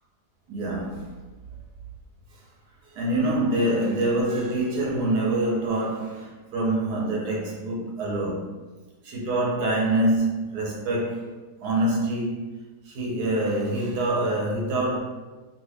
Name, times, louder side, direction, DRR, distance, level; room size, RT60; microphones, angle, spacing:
voice 1, 0.5-1.1 2.9-8.5 9.0-11.3 11.6-15.0, right 1 dB, 70° right, -4 dB, 1.2 m, -25 dB
2.9 x 2.7 x 3.3 m, 1.3 s
omnidirectional pair, 1.8 m